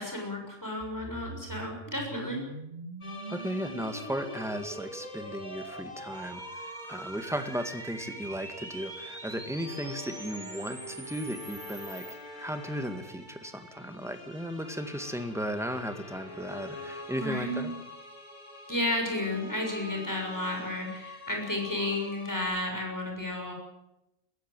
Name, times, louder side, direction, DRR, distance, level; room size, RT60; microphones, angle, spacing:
voice 1, 0.0-2.4 17.1-17.8 18.7-23.5, left 1 dB, 15° left, 1 dB, 6.7 m, -32 dB
sound 1, 0.8-12.2, right 2 dB, 40° right, 2.7 m, -44 dB
sound 2, 3.0-22.4, left 1 dB, 40° left, 4.3 m, -46 dB
voice 2, 3.3-17.7, equal, ahead, 7 dB, 1.9 m, -36 dB
21.5 x 16.0 x 9.1 m, 0.91 s
omnidirectional pair, 1.2 m